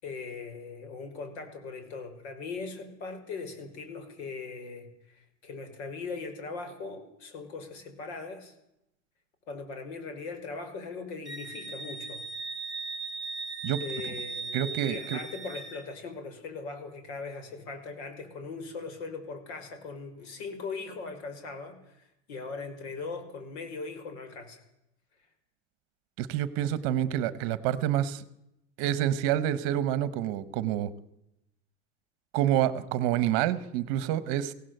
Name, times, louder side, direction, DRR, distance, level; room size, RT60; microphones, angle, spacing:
voice 1, 0.0-8.6 9.5-12.3 13.8-24.6, left 4 dB, 60° left, 8 dB, 5.6 m, -40 dB
Wind instrument woodwind instrument, 11.3-15.8, right 4 dB, ahead, 4.0 m, -38 dB
voice 2, 14.5-15.2 26.2-28.2 28.8-30.9 32.3-34.5, right 11 dB, 35° right, 16 dB, 1.1 m, -28 dB
23.5 x 17.0 x 7.9 m, 0.83 s
supercardioid pair, 180°, 36 cm